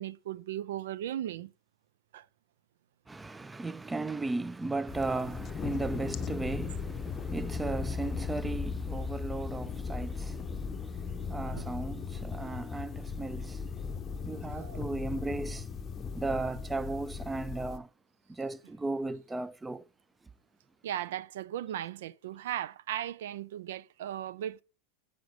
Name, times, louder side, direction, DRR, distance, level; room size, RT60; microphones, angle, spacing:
voice 1, 0.0-1.5 2.1-2.3 11.6-11.7 14.6-14.8 20.8-24.6, right 11 dB, 80° right, 0.4 m, -37 dB
voice 2, 3.1-13.7 14.2-15.7 16.2-17.9 18.3-19.9, right 3 dB, 10° right, 0.4 m, -36 dB
sound 1, 4.9-17.8, left 5 dB, 25° left, 0.6 m, -37 dB
9.5 x 5.1 x 4.7 m
supercardioid pair, 130°, 0 cm